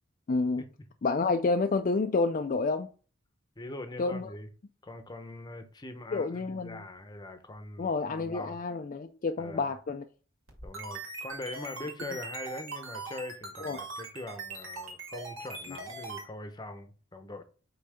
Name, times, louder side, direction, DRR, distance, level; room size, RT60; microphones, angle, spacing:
voice 1, 0.3-0.6 1.0-2.9 4.0-4.3 6.1-6.8 7.8-10.0 13.6-13.8, left 3 dB, 40° left, 0.4 m, -29 dB
voice 2, 3.6-4.5 4.8-8.6 9.4-9.7 10.6-17.4, left 2 dB, 20° left, 0.8 m, -42 dB
sound 1, 10.5-16.2, right 3 dB, 80° right, 2.3 m, -41 dB
5.5 x 3.9 x 5.0 m
head